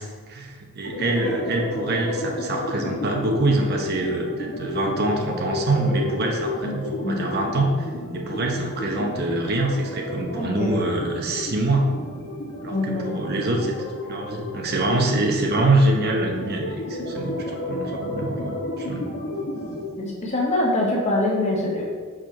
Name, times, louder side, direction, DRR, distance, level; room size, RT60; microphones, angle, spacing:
voice 1, 0.0-7.9 8.1-12.0 12.6-13.7 14.1-19.1, right 2 dB, 45° right, 1 dB, 0.8 m, -25 dB
sound 1, 0.8-19.8, left 1 dB, 60° left, 1.2 m, -32 dB
voice 2, 10.3-11.0 12.7-13.4 20.0-21.8, left 1 dB, 30° left, -3 dB, 1.4 m, -25 dB
4.9 x 4.4 x 5.8 m, 1.5 s
head